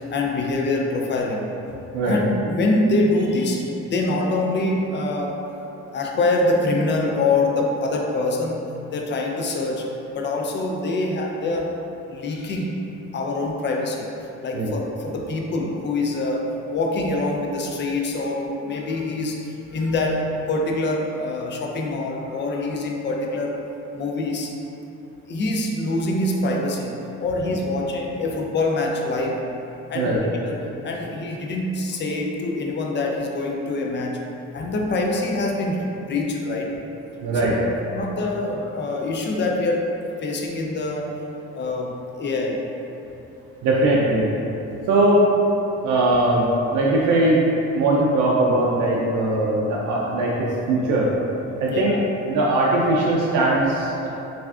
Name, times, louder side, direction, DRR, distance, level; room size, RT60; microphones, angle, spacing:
voice 1, 0.1-1.5 2.1-5.3 5.9-11.8 12.1-12.8 13.1-14.1 14.4-23.6 23.9-24.5 25.3-26.9 27.2-29.5 29.9-34.2 34.5-36.7 37.4-37.5 37.9-39.9 40.2-41.1 41.5-42.6 51.7-52.0, left 2 dB, 40° left, 0 dB, 0.4 m, -25 dB
voice 2, 37.2-37.5 43.6-44.3 44.9-45.2 45.8-46.5 46.7-47.4 47.7-51.1 51.6-51.9 52.3-54.1, right 2 dB, 90° right, -4 dB, 0.5 m, -20 dB
3.3 x 2.4 x 2.3 m, 2.9 s
cardioid pair, 90°, 30 cm